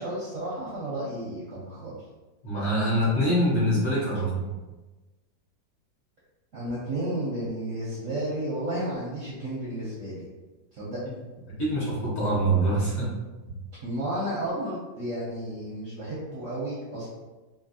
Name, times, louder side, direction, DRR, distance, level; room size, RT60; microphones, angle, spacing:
voice 1, 0.0-1.9 6.5-10.2 10.7-11.0 13.8-17.1, right 1 dB, 60° right, -7 dB, 0.8 m, -32 dB
voice 2, 2.4-4.5 11.5-13.1, right 1 dB, 55° left, -7 dB, 1.4 m, -24 dB
3.3 x 2.6 x 2.6 m, 1.2 s
omnidirectional pair, 2.0 m